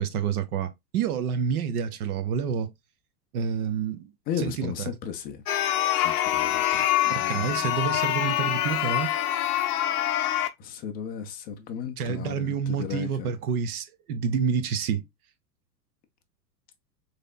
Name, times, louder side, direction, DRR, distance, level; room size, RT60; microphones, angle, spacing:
voice 1, 0.0-2.7 3.3-4.1 4.4-4.7 7.1-9.1 12.0-15.1, right 7 dB, 60° right, 0.9 m, -28 dB
voice 2, 4.3-5.4 5.9-7.7 10.6-13.3, left 8 dB, 20° left, 0.4 m, -35 dB
sound 1, 5.5-10.5, left 13 dB, 60° left, 0.7 m, -25 dB
4.1 x 3.3 x 2.3 m
hypercardioid pair, 105°, 50 cm